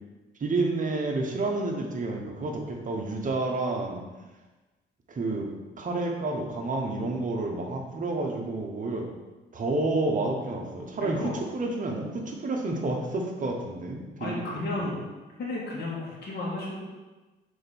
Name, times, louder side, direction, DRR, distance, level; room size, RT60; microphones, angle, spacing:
voice 1, 0.4-4.0 5.1-5.5 5.8-9.1 9.5-14.4 14.8-14.9, right 2 dB, 40° right, 1 dB, 1.1 m, -29 dB
voice 2, 11.0-11.4 14.2-15.0 15.4-16.8, left 2 dB, 55° left, -5 dB, 2.0 m, -33 dB
5.0 x 4.6 x 4.3 m, 1.2 s
cardioid pair, 90°, 20 cm